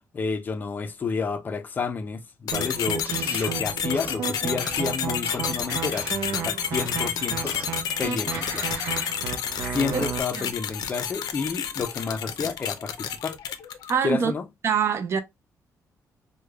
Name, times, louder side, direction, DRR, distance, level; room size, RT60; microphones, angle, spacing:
voice 1, 0.1-7.6 8.0-8.7 9.7-13.4 14.0-14.5, left 5 dB, 30° left, 0.4 m, -30 dB
sound 1, 2.5-14.1, left 8 dB, 80° left, 0.5 m, -30 dB
sound 2, 2.5-10.2, right 8 dB, 85° right, 0.5 m, -33 dB
sound 3, 3.0-3.6 3.9-4.2 4.6-6.3 6.8-7.8 8.3-9.2 9.6-9.8, right 1 dB, 25° right, 1.4 m, -39 dB
voice 2, 13.9-14.3 14.6-15.2, right 6 dB, 40° right, 0.5 m, -24 dB
4.8 x 2.2 x 2.2 m
cardioid pair, 165°, 7 cm